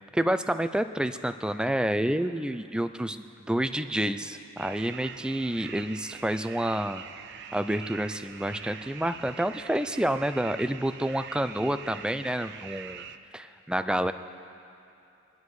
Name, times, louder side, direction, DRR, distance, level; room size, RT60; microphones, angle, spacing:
voice 1, 0.0-7.0 7.5-13.0 13.3-14.1, right 1 dB, 5° right, 10 dB, 0.4 m, -29 dB
sound 1, 4.6-13.2, right 8 dB, 50° right, 0.5 m, -44 dB
26.0 x 11.0 x 4.8 m, 2.7 s
head